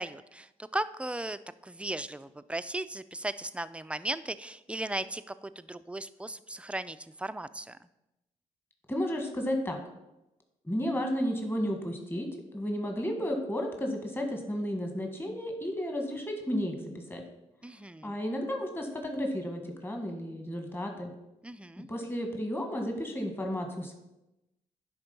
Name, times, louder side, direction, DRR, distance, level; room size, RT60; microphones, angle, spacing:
voice 1, 0.0-7.8 17.6-18.2 21.4-21.9, right 1 dB, 10° right, 13 dB, 0.4 m, -37 dB
voice 2, 8.9-9.8 10.6-17.2 18.0-21.1 21.8-23.9, equal, 15° left, 3 dB, 1.5 m, -33 dB
10.0 x 3.7 x 5.3 m, 0.94 s
supercardioid pair, 55°, 14 cm